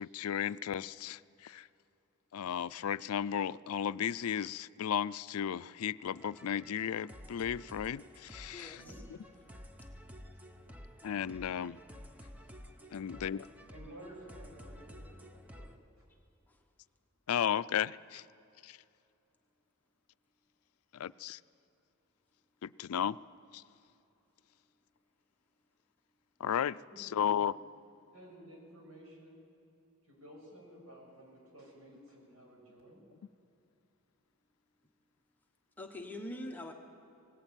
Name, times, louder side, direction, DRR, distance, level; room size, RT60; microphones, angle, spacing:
voice 1, 0.0-1.7 2.3-8.8 9.1-9.2 11.0-11.8 12.9-13.4 17.3-18.2 18.6-18.8 20.9-21.4 22.6-23.2 23.5-23.6 26.4-27.6, left 9 dB, 80° left, 17 dB, 0.4 m, -34 dB
sound 1, 6.0-15.8, equal, 5° right, 0.8 m, -52 dB
voice 2, 8.5-8.9 16.5-16.6 35.8-36.7, left 1 dB, 10° left, 2 dB, 1.1 m, -43 dB
voice 3, 13.7-15.7 26.9-27.4 28.1-29.4 30.1-33.0, right 1 dB, 80° right, -1 dB, 6.7 m, -53 dB
19.0 x 19.0 x 9.0 m, 2.7 s
head